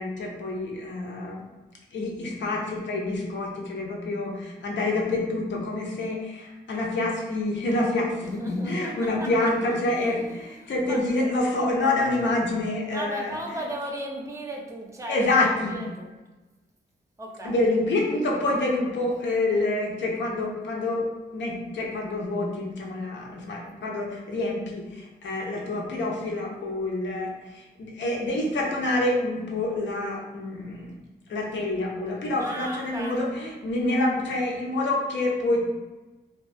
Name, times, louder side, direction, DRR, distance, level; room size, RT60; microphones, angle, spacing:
voice 1, 0.0-1.4 1.9-13.6 15.1-15.8 17.4-21.1 21.3-30.9 31.3-35.6, left 2 dB, 75° left, -1 dB, 0.6 m, -27 dB
voice 2, 7.9-11.0 12.9-16.1 17.2-17.6 32.4-33.2, right 1 dB, 15° right, -1 dB, 0.5 m, -37 dB
2.2 x 2.2 x 2.5 m, 1.1 s
cardioid pair, 65°, 19 cm